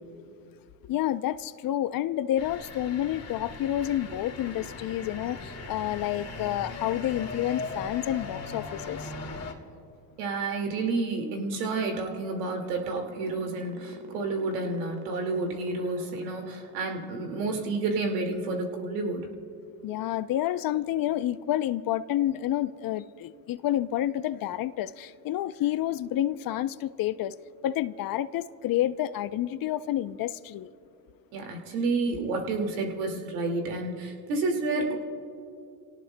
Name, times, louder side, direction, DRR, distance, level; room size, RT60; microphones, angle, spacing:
voice 1, 0.8-9.1 19.8-27.4 27.6-30.7, left 12 dB, 45° left, 15 dB, 0.6 m, -29 dB
sound 1, 2.4-9.5, left 3 dB, 30° left, 2.1 m, -39 dB
voice 2, 10.2-19.3 31.3-35.0, right 3 dB, 85° right, 2 dB, 2.3 m, -30 dB
sound 2, 11.1-17.7, right 7 dB, 50° right, 1.8 m, -47 dB
28.0 x 18.0 x 2.2 m, 2.7 s
supercardioid pair, 80°, 48 cm